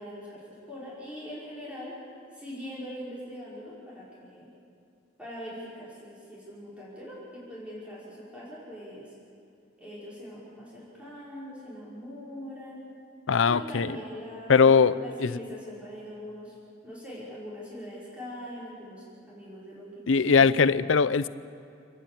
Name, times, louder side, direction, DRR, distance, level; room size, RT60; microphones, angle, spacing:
voice 1, 0.0-2.0 2.3-4.5 5.2-9.1 9.8-12.8 13.5-16.5 16.8-20.9, equal, 5° right, -7 dB, 5.3 m, -42 dB
voice 2, 13.3-14.0 14.5-15.3 20.1-21.3, left 5 dB, 85° left, 16 dB, 0.6 m, -21 dB
30.0 x 10.5 x 8.5 m, 2.6 s
head